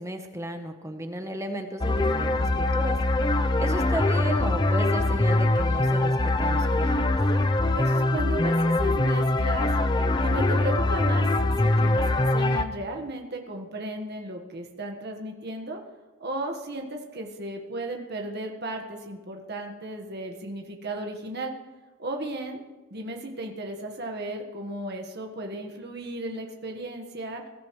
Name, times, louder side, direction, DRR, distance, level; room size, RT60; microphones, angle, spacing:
voice 1, 0.0-3.0 3.6-7.1, right 1 dB, 15° right, 5 dB, 1.0 m, -34 dB
sound 1, 1.8-12.7, left 2 dB, 20° left, 0.6 m, -23 dB
voice 2, 7.7-9.7 10.2-11.3 11.6-15.8 16.2-21.5 22.0-22.6 22.9-27.4, right 1 dB, 50° right, 2 dB, 1.5 m, -35 dB
22.0 x 13.5 x 3.2 m, 1.2 s
head